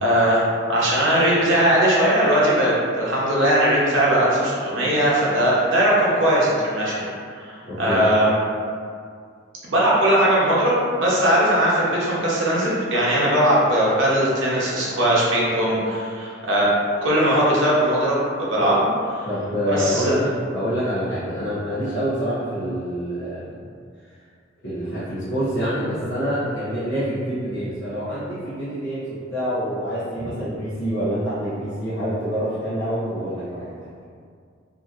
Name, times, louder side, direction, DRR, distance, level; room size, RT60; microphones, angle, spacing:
voice 1, 0.0-0.4 0.7-7.1 7.4-8.3 9.7-16.7 17.0-19.3 19.7-20.1, right 1 dB, 65° right, -6 dB, 0.8 m, -19 dB
voice 2, 7.6-8.0 19.3-23.5 24.6-33.8, equal, 60° left, -13 dB, 0.8 m, -26 dB
2.7 x 2.7 x 2.4 m, 2.2 s
head